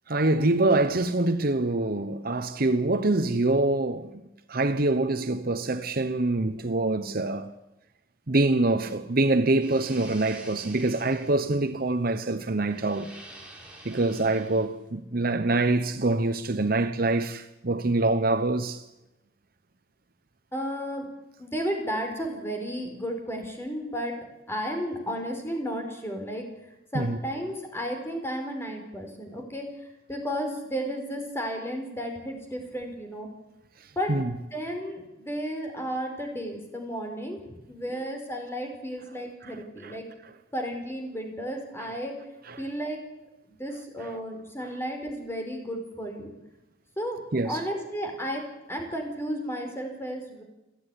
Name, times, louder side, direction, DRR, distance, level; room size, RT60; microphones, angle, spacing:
voice 1, 0.1-4.2 4.5-7.5 8.3-13.1 13.8-18.8 26.9-27.2 34.1-34.3 39.4-39.5 39.8-39.9 42.5-42.6 47.3-47.6, right 2 dB, 50° right, 1.0 m, -25 dB
sound 1, 9.6-14.9, right 1 dB, 5° right, 4.9 m, -48 dB
voice 2, 20.5-21.1 21.4-24.1 24.5-26.5 26.9-29.6 30.1-33.3 33.9-40.1 40.5-42.1 42.6-43.0 43.5-46.3 47.0-48.4 48.7-50.4, equal, 15° left, 4.6 m, -33 dB
29.5 x 10.0 x 10.0 m
head